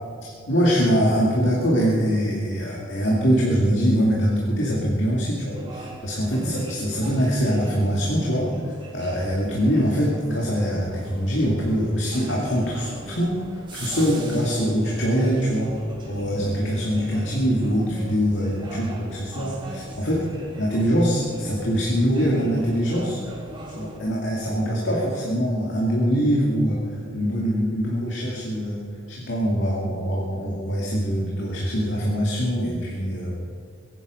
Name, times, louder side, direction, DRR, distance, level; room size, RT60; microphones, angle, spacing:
voice 1, 0.2-13.4 13.7-15.7 16.1-23.2 23.7-28.8 29.1-33.4, equal, 60° left, -4 dB, 2.3 m, -23 dB
sound 1, 5.5-24.0, right 1 dB, 25° right, 2.2 m, -39 dB
23.0 x 9.9 x 5.2 m, 2.4 s
head